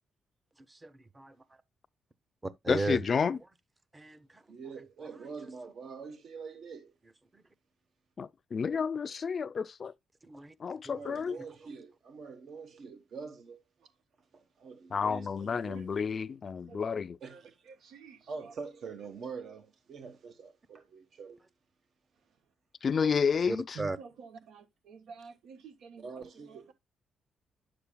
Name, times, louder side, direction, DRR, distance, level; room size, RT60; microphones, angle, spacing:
voice 1, 0.7-1.3 2.4-3.0 3.9-4.4 7.3-7.4 10.2-10.5 23.5-24.0, right 2 dB, 20° right, 0.7 m, -35 dB
voice 2, 2.7-3.4 8.2-9.9 10.6-11.4 14.9-17.2 22.8-23.8, left 6 dB, 40° left, 0.4 m, -30 dB
voice 3, 4.5-6.9 10.8-13.6 14.3-16.0 17.2-17.6 18.3-21.4 26.0-26.7, right 5 dB, 60° right, 1.1 m, -45 dB
voice 4, 16.6-17.0 17.3-18.5 23.7-26.7, right 6 dB, 85° right, 1.3 m, -50 dB
10.0 x 6.9 x 2.2 m
cardioid pair, 120°, 0 cm